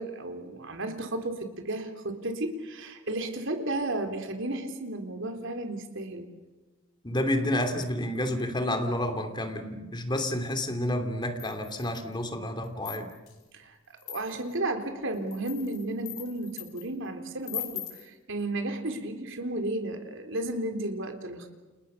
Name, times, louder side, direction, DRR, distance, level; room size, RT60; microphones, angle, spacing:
voice 1, 0.0-6.3 13.5-13.8 14.1-21.5, right 1 dB, 60° right, 6 dB, 3.9 m, -33 dB
voice 2, 7.0-13.1, left 1 dB, 20° left, 6 dB, 2.9 m, -30 dB
sound 1, 11.4-12.1 12.6-13.3 14.0-14.5 15.1-16.9 17.4-18.1, left 13 dB, 85° left, 5.4 m, -40 dB
30.0 x 29.0 x 6.9 m, 1.2 s
head